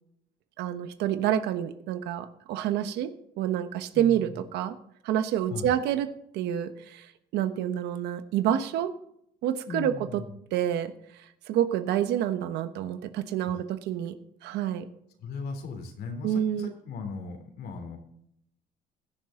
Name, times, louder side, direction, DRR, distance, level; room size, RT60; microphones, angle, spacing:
voice 1, 0.6-3.1 3.4-4.8 5.0-6.1 6.3-8.9 9.4-10.2 10.5-14.1 14.4-14.9 16.2-16.7, right 10 dB, 85° right, 10 dB, 1.2 m, -28 dB
voice 2, 3.9-4.4 5.5-5.8 9.7-10.3 13.4-13.6 15.2-18.0, left 4 dB, 70° left, 4 dB, 3.4 m, -38 dB
16.5 x 10.0 x 3.8 m, 0.74 s
cardioid pair, 110°, 17 cm